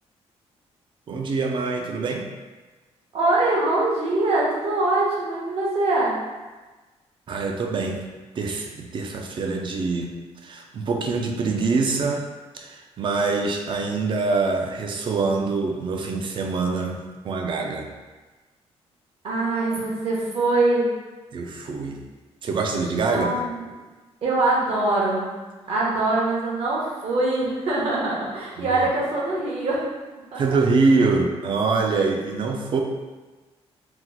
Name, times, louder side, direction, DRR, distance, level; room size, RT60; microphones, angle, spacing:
voice 1, 1.1-2.3 7.3-8.1 8.4-10.1 10.4-12.3 12.5-17.9 21.3-22.0 22.4-23.4 28.6-28.9 30.4-32.8, right 4 dB, 45° right, 3 dB, 0.4 m, -24 dB
voice 2, 3.1-6.2 19.2-20.9 23.1-23.6 24.2-25.3 25.7-29.8 30.3-30.4, right 2 dB, 65° right, -4 dB, 0.9 m, -23 dB
2.9 x 2.0 x 3.7 m, 1.3 s
cardioid pair, 125°, 11 cm